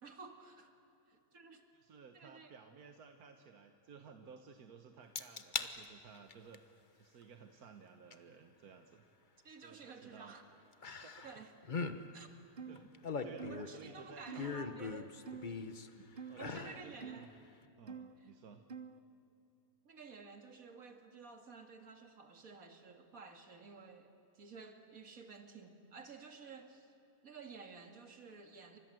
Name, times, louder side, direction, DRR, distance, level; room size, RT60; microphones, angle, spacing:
voice 1, 0.0-0.7 1.1-1.6 2.1-2.5 9.4-10.5 11.2-11.5 12.1-12.3 13.5-15.1 16.4-17.3 18.2-18.3 19.8-26.9 27.2-28.8, right 4 dB, 70° right, 5 dB, 2.6 m, -52 dB
voice 2, 1.7-9.0 9.6-10.3 10.9-11.4 12.6-12.9 13.2-14.6 15.9-17.3 17.8-18.6, right 5 dB, 90° right, 6 dB, 1.7 m, -56 dB
sound 1, 5.2-5.7 6.2-6.6 8.1-8.2 10.8-11.4 11.6-12.0 12.8-13.8 14.4-15.9 16.3-16.8 17.2-17.3, left 4 dB, 35° left, 1.1 m, -40 dB
sound 2, 12.6-12.8 13.4-13.7 14.3-14.5 15.3-15.6 16.2-16.4 17.0-17.2 17.9-18.1 18.7-19.0, right 6 dB, 40° right, 0.9 m, -47 dB
29.5 x 25.5 x 7.8 m, 2.8 s
omnidirectional pair, 1.5 m